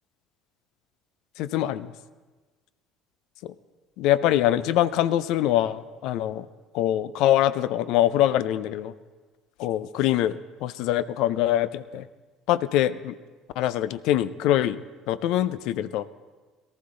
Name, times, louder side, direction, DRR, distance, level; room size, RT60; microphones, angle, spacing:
voice 1, 1.4-1.9 3.4-3.5 4.0-6.5 6.7-8.9 9.6-12.1 12.5-13.1 13.6-16.1, left 12 dB, 65° left, 16 dB, 0.5 m, -24 dB
18.5 x 13.0 x 3.8 m, 1.3 s
hypercardioid pair, 60°, 0 cm